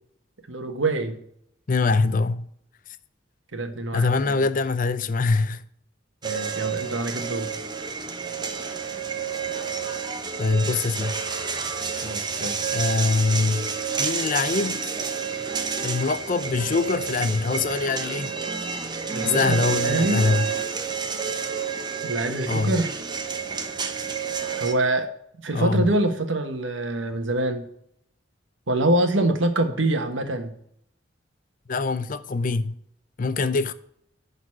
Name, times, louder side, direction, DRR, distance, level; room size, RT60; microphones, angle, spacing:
voice 1, 0.5-1.2 3.5-4.4 6.2-7.5 12.0-12.6 19.1-20.3 22.0-22.9 24.5-25.1 25.4-27.7 28.7-30.5, right 2 dB, 85° right, 1.4 m, -25 dB
voice 2, 1.7-2.5 3.9-5.7 10.4-11.2 12.7-13.7 14.0-14.9 15.8-18.3 19.2-20.5 22.5-22.8 25.5-25.9 31.7-32.7 33.2-33.7, left 4 dB, 45° left, 0.5 m, -23 dB
sound 1, 6.2-24.7, right 6 dB, 25° right, 0.8 m, -29 dB
11.0 x 4.1 x 5.9 m
head